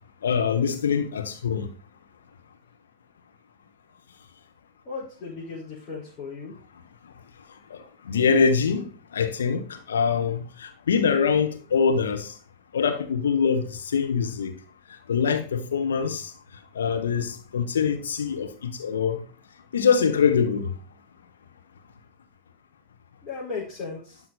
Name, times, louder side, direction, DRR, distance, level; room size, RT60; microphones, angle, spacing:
voice 1, 0.2-1.7 7.7-8.9 9.1-12.3 12.7-14.5 15.1-16.3 16.7-19.2 19.7-20.7, left 6 dB, 65° left, 1.2 m, -24 dB
voice 2, 4.8-6.5 23.2-24.2, left 4 dB, 30° left, 4.8 m, -36 dB
12.0 x 6.0 x 4.2 m
figure-of-eight pair, 90°, 0 cm